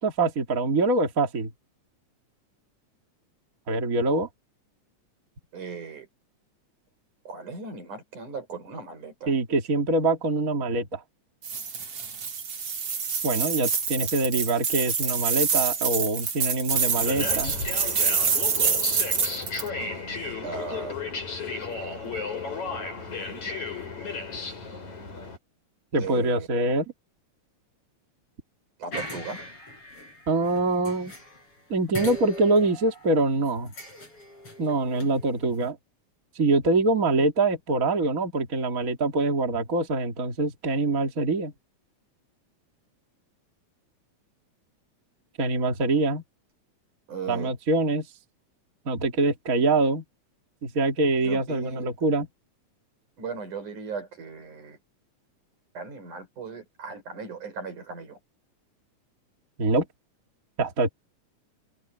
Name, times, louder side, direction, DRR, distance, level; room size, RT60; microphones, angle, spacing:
voice 1, 0.0-1.5 3.7-4.3 9.3-11.0 13.2-17.6 25.9-26.9 30.3-31.1 31.7-33.7 34.6-35.8 36.4-41.5 45.4-46.2 47.3-48.1 48.9-50.0 50.6-52.3 59.6-59.9 60.6-60.9, right 2 dB, 30° right, 2.7 m, -24 dB
voice 2, 5.5-6.1 7.2-9.3 20.4-21.0 26.0-26.6 28.8-29.4 47.1-47.5 51.2-52.0 53.2-54.8 55.7-58.2, right 5 dB, 85° right, 8.1 m, -37 dB
sound 1, 11.4-19.7, right 6 dB, 50° right, 3.6 m, -26 dB
sound 2, 16.7-25.4, left 4 dB, 70° left, 8.6 m, -34 dB
sound 3, 28.9-31.6 31.9-35.7, left 1 dB, 45° left, 7.4 m, -40 dB
omnidirectional pair, 3.4 m